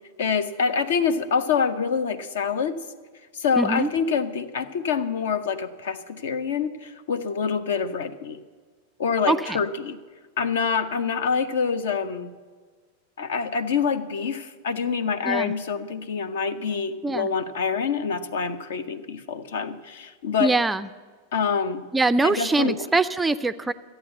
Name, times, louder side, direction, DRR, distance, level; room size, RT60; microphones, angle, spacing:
voice 1, 0.2-2.8 3.4-8.4 9.0-10.0 10.4-12.3 13.2-20.5 21.3-21.8 22.2-22.8, left 6 dB, 60° left, 12 dB, 0.7 m, -26 dB
voice 2, 3.6-3.9 9.3-9.6 15.3-15.5 17.0-17.3 20.4-20.9 21.9-23.7, right 3 dB, 10° right, 13 dB, 0.4 m, -23 dB
13.5 x 8.9 x 8.0 m, 1.5 s
figure-of-eight pair, 90°, 0 cm